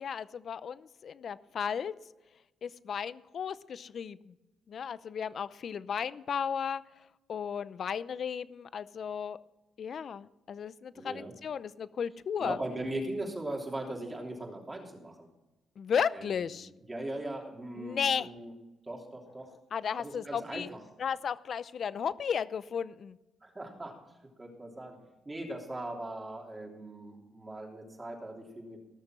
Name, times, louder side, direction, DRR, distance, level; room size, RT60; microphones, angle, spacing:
voice 1, 0.0-1.9 2.6-4.3 4.7-6.8 7.3-9.4 9.8-12.6 15.8-16.7 17.8-18.3 19.7-20.7 21.0-23.2, left 7 dB, 55° left, 17 dB, 0.6 m, -34 dB
voice 2, 10.9-11.3 12.4-15.3 16.1-16.6 16.9-18.5 18.9-19.5 20.0-20.8 23.4-25.0 25.2-28.9, right 1 dB, 20° right, 1 dB, 3.2 m, -39 dB
18.0 x 6.7 x 6.2 m, 1.0 s
cardioid pair, 90°, 0 cm